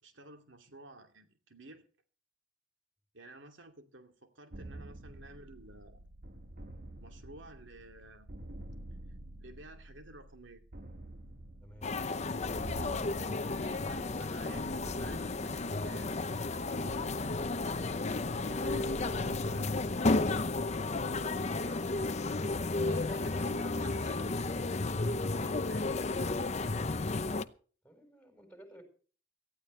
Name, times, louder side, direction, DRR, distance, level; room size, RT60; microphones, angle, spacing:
voice 1, 0.0-1.8 3.1-6.0 7.0-8.3 9.4-10.6 13.5-16.1 16.6-17.2 18.0-19.9 20.9-21.9 22.8-24.5 25.3-26.1 26.4-26.9, right 2 dB, 75° right, 5 dB, 2.6 m, -53 dB
sound 1, 4.5-22.2, right 1 dB, 50° right, 1.4 m, -49 dB
voice 2, 11.6-12.5 27.8-28.8, equal, 5° left, 6 dB, 4.5 m, -56 dB
sound 2, 11.8-27.4, left 3 dB, 35° left, 0.7 m, -33 dB
18.5 x 14.0 x 3.3 m, 0.40 s
head